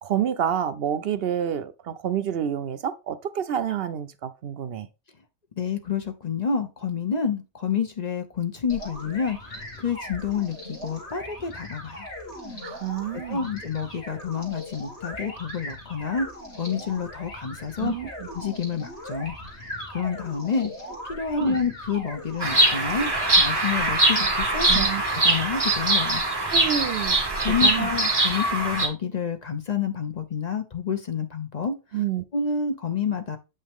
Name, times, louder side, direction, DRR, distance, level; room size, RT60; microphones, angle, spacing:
voice 1, 0.0-4.9 12.6-13.5 17.8-18.1 21.3-21.6 24.1-24.3 24.7-25.0 26.5-27.2 27.5-27.9 31.9-32.2, right 9 dB, 65° right, 0.8 m, -28 dB
voice 2, 5.6-12.1 13.1-16.3 16.6-18.0 18.3-19.4 19.9-20.7 21.0-23.1 23.4-24.9 25.2-26.2 27.4-31.8 32.3-33.4, left 6 dB, 40° left, 0.9 m, -28 dB
sound 1, 8.7-23.7, left 1 dB, 85° left, 2.4 m, -39 dB
Bird vocalization bird call bird song, 22.4-28.9, right 2 dB, 20° right, 1.8 m, -22 dB
7.9 x 5.6 x 3.5 m
omnidirectional pair, 1.1 m